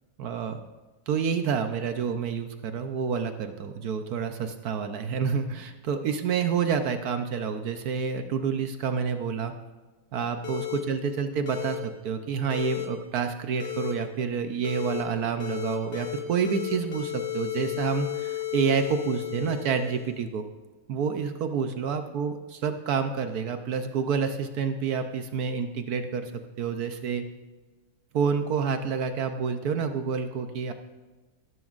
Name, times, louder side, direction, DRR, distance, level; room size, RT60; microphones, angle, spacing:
voice 1, 0.2-0.6 1.1-9.5 10.1-20.5 20.9-26.3 26.6-27.3 28.1-30.7, right 6 dB, 65° right, 8 dB, 1.0 m, -28 dB
sound 1, 10.4-10.8 11.5-11.8 12.5-12.9 13.6-13.9 14.6-15.0 15.4-16.2 16.4-20.2, left 13 dB, 70° left, 2.1 m, -34 dB
14.0 x 12.5 x 2.5 m, 1.2 s
omnidirectional pair, 2.2 m